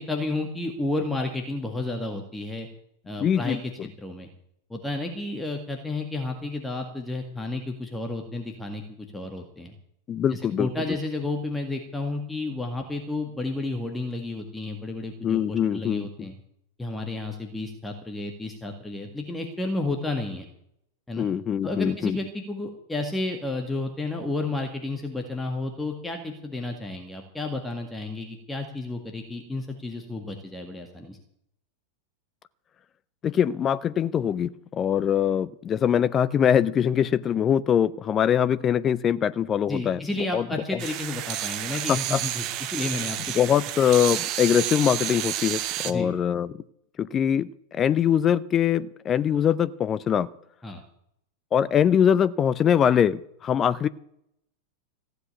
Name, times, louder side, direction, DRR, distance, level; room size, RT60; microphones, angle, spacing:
voice 1, 0.0-2.7 3.1-3.6 4.0-4.3 4.7-9.7 10.3-16.3 16.8-20.5 21.1-21.3 21.6-31.2 39.7-43.3 45.9-46.1 50.6-50.8, left 2 dB, 5° left, 3 dB, 1.9 m, -31 dB
voice 2, 3.2-3.9 10.1-10.7 15.2-16.3 21.2-22.2 33.2-40.8 41.9-42.2 43.3-46.6 47.0-50.3 51.5-53.9, left 9 dB, 25° left, 17 dB, 0.6 m, -23 dB
sound 1, 40.8-45.9, right 13 dB, 40° right, 0.9 m, -30 dB
15.5 x 8.1 x 9.2 m, 0.73 s
figure-of-eight pair, 90°, 0 cm